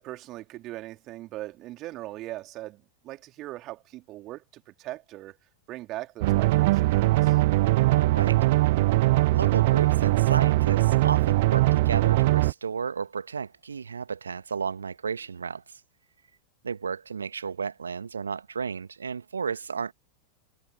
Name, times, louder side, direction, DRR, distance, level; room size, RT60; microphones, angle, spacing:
voice 1, 0.0-5.4 5.7-7.4, right 16 dB, 35° right, 3.7 m, -40 dB
sound 1, 6.2-12.5, right 19 dB, 50° right, 0.5 m, -21 dB
voice 2, 7.9-8.5 9.3-15.8 16.6-19.9, right 6 dB, 75° right, 1.5 m, -33 dB
figure-of-eight pair, 90°, 0 cm